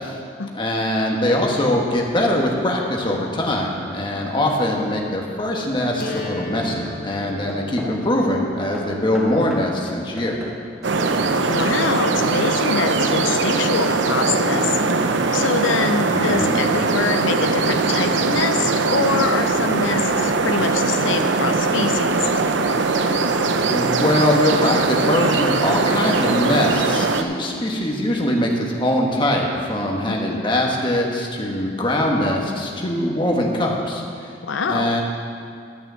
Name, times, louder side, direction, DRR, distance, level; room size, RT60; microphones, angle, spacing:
voice 1, 0.5-10.4 16.1-16.6 23.6-34.3 34.7-35.0, left 1 dB, 25° left, 0 dB, 1.4 m, -22 dB
Hammer / Wood, 4.8-5.0 5.6-8.1 8.7-12.4, left 1 dB, 5° right, 1.7 m, -39 dB
sound 1, 6.0-12.0, left 2 dB, 55° left, 1.4 m, -38 dB
sound 2, 10.8-27.2, right 3 dB, 70° right, 0.6 m, -20 dB
voice 2, 11.5-14.8 15.3-22.3 30.0-30.4 34.4-34.9, left 4 dB, 90° left, 6 dB, 0.6 m, -25 dB
12.0 x 6.2 x 7.5 m, 2.3 s
head